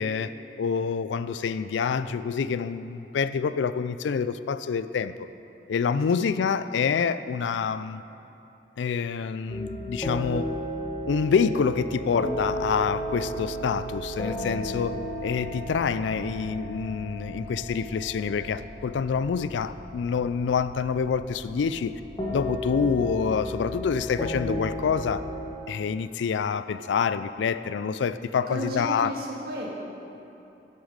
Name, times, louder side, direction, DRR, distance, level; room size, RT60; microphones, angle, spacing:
voice 1, 0.0-5.3 5.7-8.0 8.8-10.5 11.1-15.0 15.2-22.0 22.3-25.2 25.7-29.1, left 6 dB, 85° left, 14 dB, 0.3 m, -27 dB
sound 1, 9.5-25.5, equal, 25° left, 1.1 m, -34 dB
voice 2, 28.5-29.7, equal, 55° right, -3 dB, 1.7 m, -33 dB
10.5 x 7.9 x 5.2 m, 2.8 s
head